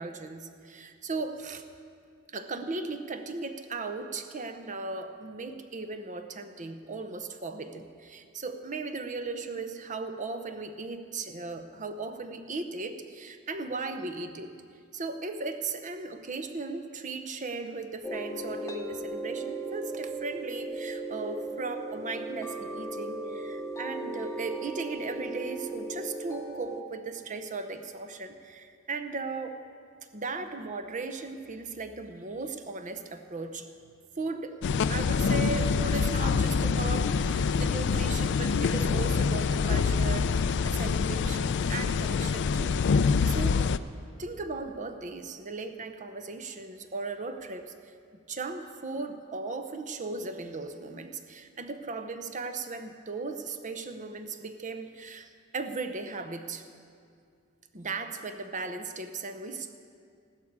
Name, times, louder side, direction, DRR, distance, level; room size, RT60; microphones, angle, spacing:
voice 1, 0.0-1.6 2.3-14.5 14.9-29.6 30.1-33.7 34.2-34.6 34.9-43.6 44.2-47.9 48.3-56.7 57.7-59.8, right 3 dB, 35° right, 8 dB, 0.7 m, -37 dB
sound 1, 18.0-26.8, right 2 dB, 15° left, 0.6 m, -37 dB
sound 2, 34.6-43.8, left 5 dB, 55° left, 0.4 m, -26 dB
15.5 x 12.0 x 4.7 m, 2.3 s
head